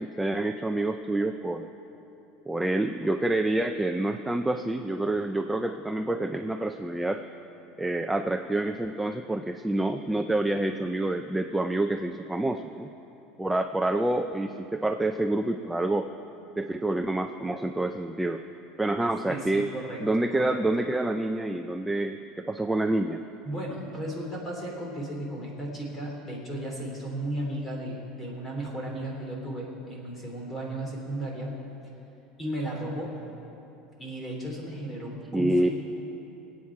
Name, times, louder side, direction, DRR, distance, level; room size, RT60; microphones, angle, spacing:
voice 1, 0.0-1.7 2.5-7.2 7.8-12.9 13.4-16.1 16.6-18.4 18.8-19.7 20.0-23.2 35.3-35.7, right 2 dB, 5° right, 6 dB, 0.4 m, -27 dB
voice 2, 19.3-20.0 20.3-20.6 23.4-31.5 32.4-33.1 34.0-35.7, right 1 dB, 15° left, -1 dB, 3.0 m, -35 dB
23.5 x 8.7 x 4.8 m, 2.9 s
cardioid pair, 165°, 0 cm